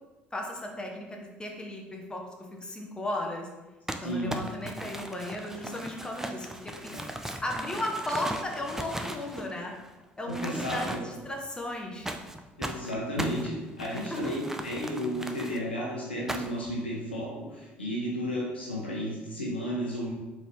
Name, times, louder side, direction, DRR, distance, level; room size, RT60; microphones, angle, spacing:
voice 1, 0.3-2.2 2.6-3.5 4.0-6.9 7.2-9.7 10.2-12.1 13.9-14.0, left 1 dB, 15° left, 1 dB, 0.9 m, -35 dB
Crumpling crinkling, 3.9-9.9 10.3-11.3 12.1-15.6 16.3-16.7, right 1 dB, 5° right, 0.4 m, -38 dB
voice 2, 4.0-4.4 6.8-7.0 10.2-11.0 12.6-20.1, equal, 80° left, -3 dB, 0.9 m, -33 dB
3.9 x 3.9 x 3.1 m, 1.1 s
figure-of-eight pair, 55°, 6 cm